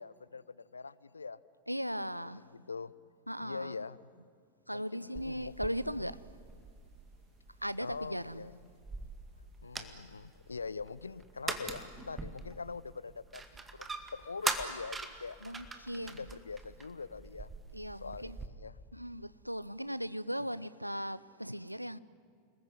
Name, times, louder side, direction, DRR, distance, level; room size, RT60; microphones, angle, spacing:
voice 1, 0.0-1.4 2.0-2.1 2.5-2.9 3.4-4.0 4.7-5.5 5.9-6.1 7.8-8.6 9.6-15.4 16.0-17.5 18.0-18.8, left 4 dB, 75° left, 0.7 m, -43 dB
voice 2, 1.7-2.4 3.3-3.8 4.7-6.2 7.6-8.5 15.4-16.3 17.7-18.4 18.9-22.0, equal, 90° right, 0.7 m, -38 dB
sound 1, 5.2-18.5, right 3 dB, 15° right, 2.1 m, -43 dB
29.5 x 20.5 x 9.7 m
figure-of-eight pair, 90°, 0 cm